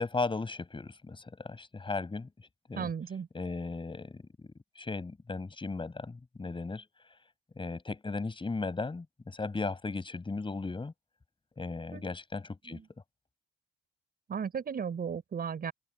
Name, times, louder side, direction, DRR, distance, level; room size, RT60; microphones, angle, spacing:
voice 1, 0.0-2.3 2.7-2.9 3.3-4.2 4.8-6.8 7.6-10.9 11.6-12.8, left 3 dB, 25° left, 7.7 m, -36 dB
voice 2, 2.8-3.3 11.9-12.0 12.7-12.8 14.3-15.7, right 7 dB, 50° right, 6.1 m, -35 dB
cardioid pair, 90°, 20 cm